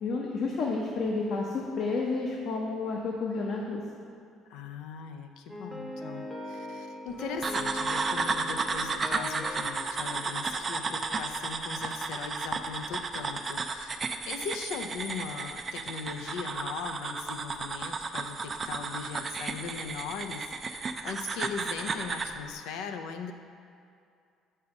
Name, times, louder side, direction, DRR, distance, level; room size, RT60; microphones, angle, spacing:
voice 1, 0.0-4.0, left 3 dB, 55° left, -2 dB, 0.9 m, -31 dB
voice 2, 4.5-14.0 14.3-23.3, left 6 dB, 85° left, 6 dB, 0.6 m, -39 dB
sound 1, 5.5-11.1, left 1 dB, ahead, 0.8 m, -41 dB
sound 2, 7.4-22.4, right 4 dB, 30° right, 0.4 m, -33 dB
5.9 x 5.5 x 6.5 m, 2.5 s
cardioid pair, 130°, 0 cm